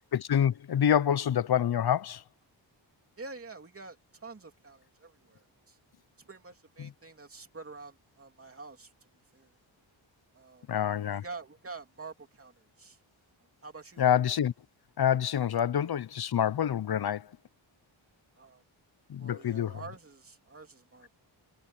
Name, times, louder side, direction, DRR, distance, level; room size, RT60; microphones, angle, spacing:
voice 1, 0.1-2.2 6.8-6.9 10.7-11.2 14.0-14.5 15.0-17.3 19.1-19.8, left 9 dB, 55° left, 0.6 m, -27 dB
voice 2, 3.2-5.8 6.2-8.9 9.3-9.6 10.3-10.7 11.1-13.0 13.4-14.0 18.4-18.6 19.2-21.1, right 3 dB, 30° right, 2.9 m, -47 dB
wide cardioid pair, 130°, 47 cm